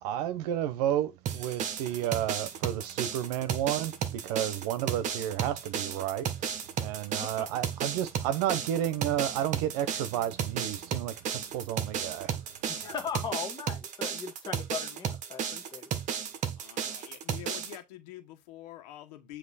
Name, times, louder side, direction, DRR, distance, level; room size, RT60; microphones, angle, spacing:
voice 1, 0.0-12.4, right 11 dB, 65° right, 1.0 m, -32 dB
sound 1, 1.3-17.8, right 8 dB, 35° right, 1.1 m, -34 dB
voice 2, 12.7-15.9, left 7 dB, 20° left, 1.3 m, -38 dB
voice 3, 16.6-19.4, left 13 dB, 75° left, 1.4 m, -46 dB
7.5 x 3.1 x 4.2 m
supercardioid pair, 130°, 21 cm